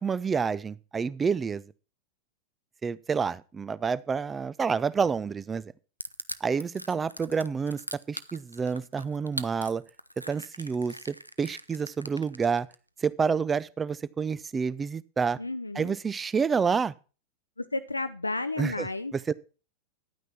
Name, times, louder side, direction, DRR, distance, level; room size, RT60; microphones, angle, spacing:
voice 1, 0.0-1.6 2.8-5.6 6.4-7.8 8.1-9.8 10.3-12.7 13.0-15.4 15.8-16.9 18.6-18.9 19.1-19.3, right 5 dB, 15° right, 20 dB, 0.5 m, -28 dB
Crushing, 6.0-12.7, equal, 90° right, 0.5 m, -40 dB
voice 2, 15.4-16.0 17.6-19.3, left 2 dB, 85° left, 10 dB, 0.5 m, -33 dB
10.5 x 9.2 x 4.4 m, 0.34 s
figure-of-eight pair, 90°, 0 cm